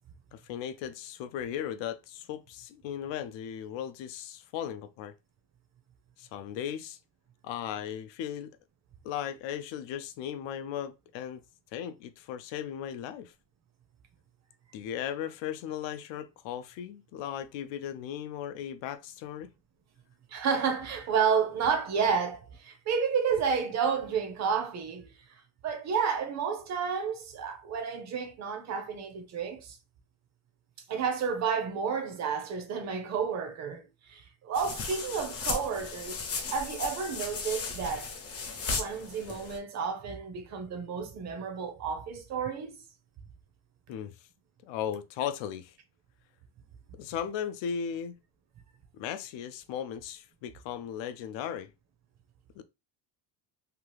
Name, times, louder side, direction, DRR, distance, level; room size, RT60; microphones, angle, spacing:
voice 1, 0.3-5.1 6.2-7.0 7.4-8.6 9.0-11.4 11.7-13.3 14.7-19.5 43.9-44.1 44.6-45.8 46.9-48.2 48.9-51.7 52.6-52.7, left 9 dB, 90° left, 0.6 m, -37 dB
voice 2, 20.3-25.1 25.6-29.8 30.9-33.8 34.1-38.1 38.7-42.8, right 6 dB, 40° right, 0.5 m, -31 dB
sound 1, 34.5-39.6, left 4 dB, 35° left, 0.5 m, -36 dB
2.9 x 2.3 x 3.1 m
cardioid pair, 180°, 43 cm